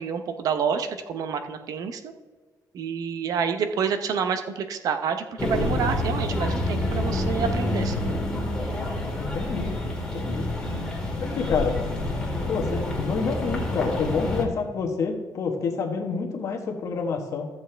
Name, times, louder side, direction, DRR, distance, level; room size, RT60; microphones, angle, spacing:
voice 1, 0.0-2.1 2.7-8.2, right 6 dB, 60° right, 8 dB, 0.7 m, -28 dB
sound 1, 5.4-14.5, left 1 dB, 10° left, 1.8 m, -28 dB
voice 2, 9.2-9.7 10.1-10.5 11.2-11.7 12.5-17.5, left 5 dB, 50° left, 2 dB, 1.2 m, -28 dB
13.0 x 7.5 x 3.3 m, 1.4 s
cardioid pair, 170°, 7 cm